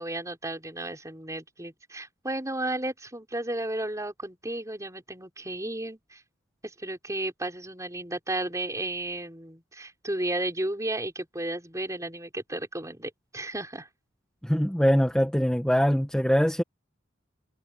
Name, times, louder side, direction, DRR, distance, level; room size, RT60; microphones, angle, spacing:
voice 1, 0.0-6.2 6.6-13.9, right 1 dB, 15° right, 4.9 m, -33 dB
voice 2, 14.4-16.6, equal, 5° left, 1.4 m, -23 dB
head